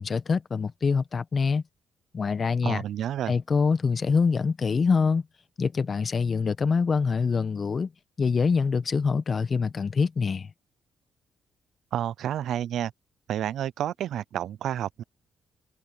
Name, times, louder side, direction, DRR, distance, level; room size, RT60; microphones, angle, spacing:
voice 1, 0.0-1.6 2.1-2.8 3.3-5.2 5.6-7.9 8.2-10.5, left 5 dB, 40° left, 1.2 m, -25 dB
voice 2, 2.6-3.3 11.9-12.9 13.3-15.0, right 11 dB, 75° right, 0.4 m, -30 dB
cardioid pair, 90°, 0 cm